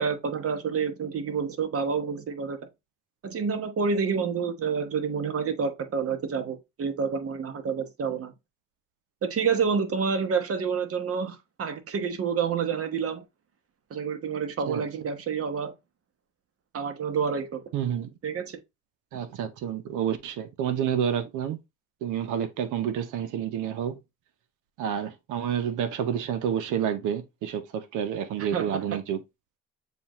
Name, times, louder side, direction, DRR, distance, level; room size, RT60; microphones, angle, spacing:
voice 1, 0.0-2.6 3.2-8.3 9.2-13.2 13.9-15.7 16.7-17.6 18.2-18.6 28.4-28.8, right 6 dB, 50° right, 1.0 m, -28 dB
voice 2, 17.7-18.1 19.1-21.6 22.0-24.0 24.8-29.2, right 8 dB, 90° right, 0.7 m, -29 dB
7.1 x 2.5 x 3.0 m
cardioid pair, 90°, 30 cm